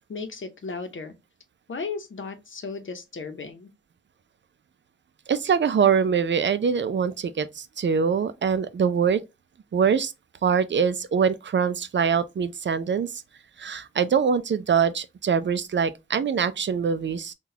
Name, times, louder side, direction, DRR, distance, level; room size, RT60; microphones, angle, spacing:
voice 1, 0.1-1.1 1.7-3.7, left 4 dB, 70° left, 0.7 m, -35 dB
voice 2, 5.3-9.2 9.7-10.1 10.4-13.2 13.6-17.3, right 6 dB, 60° right, 0.4 m, -23 dB
3.8 x 2.3 x 2.7 m
wide cardioid pair, 70°, 21 cm